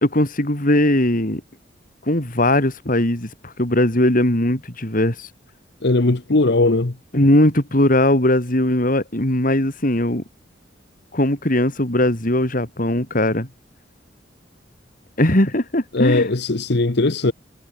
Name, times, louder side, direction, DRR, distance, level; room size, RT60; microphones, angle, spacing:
voice 1, 0.0-1.4 2.1-5.3 7.1-10.2 11.1-13.5 15.2-16.3, left 1 dB, 45° left, 3.8 m, -19 dB
voice 2, 5.8-6.9 15.9-17.3, left 2 dB, 60° left, 1.1 m, -18 dB
head